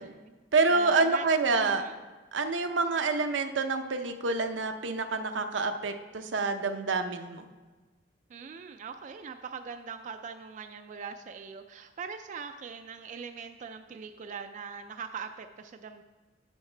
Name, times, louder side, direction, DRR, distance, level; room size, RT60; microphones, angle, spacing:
voice 1, 0.0-0.3 0.7-1.3 1.6-2.0 8.3-16.0, right 6 dB, 40° right, 7 dB, 0.3 m, -41 dB
voice 2, 0.5-1.8 2.3-7.4, right 3 dB, 85° right, 6 dB, 0.7 m, -27 dB
10.5 x 7.2 x 3.3 m, 1.3 s
head